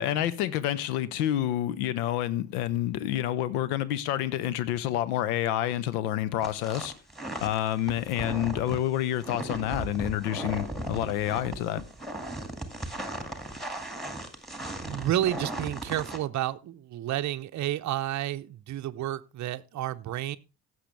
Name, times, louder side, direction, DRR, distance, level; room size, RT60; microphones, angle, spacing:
voice 1, 0.0-6.9 7.4-11.8, left 12 dB, 75° left, 0.8 m, -28 dB
sound 1, 6.4-16.2, right 1 dB, ahead, 2.0 m, -37 dB
voice 2, 14.8-20.4, right 13 dB, 40° right, 0.6 m, -31 dB
16.0 x 6.3 x 3.3 m
figure-of-eight pair, 45°, 46 cm